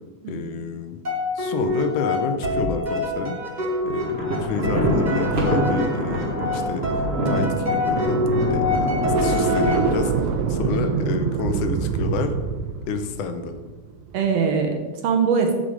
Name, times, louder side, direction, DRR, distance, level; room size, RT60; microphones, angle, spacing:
voice 1, 0.3-1.0 1.4-3.4 3.9-6.9 7.3-8.2 8.5-8.9 9.2-12.3 12.9-13.5, left 5 dB, 85° left, 7 dB, 2.3 m, -29 dB
sound 1, 1.0-10.3, left 2 dB, 50° right, 0.5 m, -26 dB
Thunder, 4.0-11.2, right 1 dB, 35° right, 1.0 m, -26 dB
sound 2, 9.0-14.3, right 7 dB, 85° right, 2.1 m, -25 dB
voice 2, 14.1-15.5, right 6 dB, 70° right, 3 dB, 1.8 m, -23 dB
7.4 x 6.6 x 5.0 m, 1.2 s
omnidirectional pair, 3.4 m